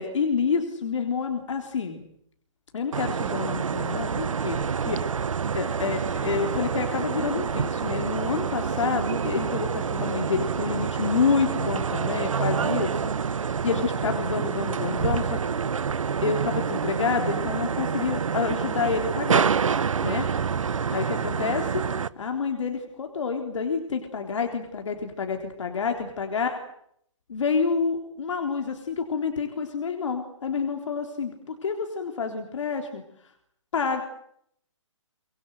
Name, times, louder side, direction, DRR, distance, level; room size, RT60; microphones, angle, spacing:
voice 1, 0.0-2.0 2.7-5.0 5.5-15.5 16.2-19.5 20.0-20.3 20.9-21.8 22.2-26.6 27.3-33.0 33.7-34.0, left 5 dB, 65° left, 4 dB, 3.7 m, -28 dB
sound 1, 2.9-22.1, right 6 dB, 80° right, 1.1 m, -27 dB
25.5 x 22.0 x 7.9 m, 0.70 s
hypercardioid pair, 155°, 17 cm